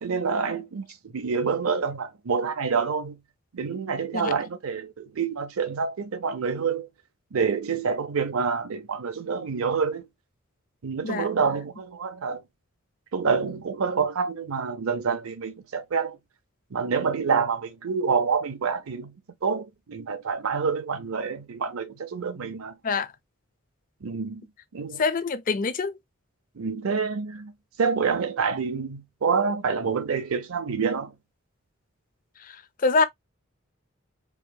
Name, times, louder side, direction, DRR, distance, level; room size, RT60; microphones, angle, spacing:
voice 1, 0.0-3.2 3.5-6.9 7.3-10.1 10.8-12.4 13.1-16.2 16.7-19.1 19.4-22.7 24.0-24.4 24.7-25.0 26.6-27.5 27.8-31.1, right 5 dB, 85° right, 0.6 m, -27 dB
voice 2, 25.0-25.9 32.8-33.0, left 4 dB, 40° left, 0.5 m, -24 dB
4.8 x 2.8 x 2.2 m
head